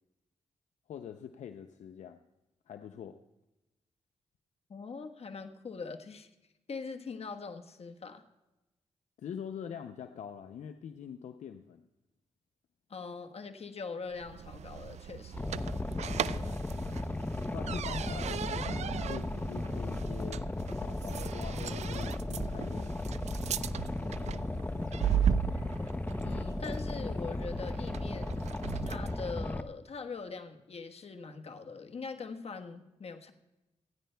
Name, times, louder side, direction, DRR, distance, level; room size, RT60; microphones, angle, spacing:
voice 1, 0.9-2.2 2.7-3.2 9.2-11.8 16.3-16.6 17.5-20.4 20.8-23.0 24.2-24.6, left 8 dB, 85° left, 8 dB, 0.5 m, -44 dB
voice 2, 4.7-6.3 6.7-8.3 12.9-15.4 26.2-28.4 28.8-33.3, left 4 dB, 60° left, 6 dB, 1.2 m, -42 dB
sound 1, 14.1-29.2, right 9 dB, 70° right, 0.4 m, -37 dB
Boat Water vehicle, 15.3-29.6, left 2 dB, 15° left, 0.6 m, -35 dB
sound 2, 23.6-29.5, right 1 dB, 40° right, 2.1 m, -50 dB
28.0 x 10.0 x 2.2 m, 1.0 s
cardioid pair, 55°, 12 cm